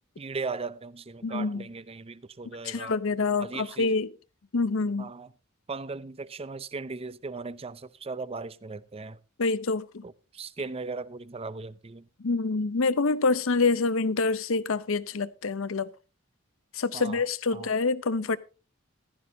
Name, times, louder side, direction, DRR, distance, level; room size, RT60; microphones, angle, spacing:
voice 1, 0.2-3.0 3.4-3.9 5.0-5.3 5.7-9.2 10.0-12.1 16.9-17.2 17.5-17.7, right 4 dB, 30° right, 0.5 m, -38 dB
voice 2, 1.2-1.6 2.6-4.1 4.5-5.1 9.4-10.0 12.2-15.9 16.7-18.4, left 4 dB, 75° left, 0.7 m, -26 dB
15.0 x 12.0 x 2.7 m
head